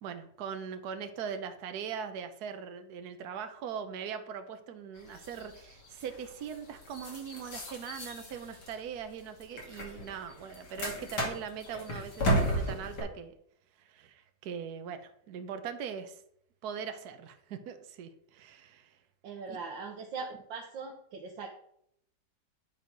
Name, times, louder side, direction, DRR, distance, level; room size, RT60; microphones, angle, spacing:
voice 1, 0.0-13.3 13.8-16.2 16.6-18.9 19.5-19.6, right 7 dB, 60° right, 8 dB, 1.3 m, -41 dB
sound 1, 5.0-13.0, equal, 60° left, 2.9 m, -35 dB
voice 2, 19.2-21.5, right 4 dB, 90° right, 2 dB, 1.7 m, -40 dB
9.4 x 4.6 x 5.3 m, 0.71 s
omnidirectional pair, 2.0 m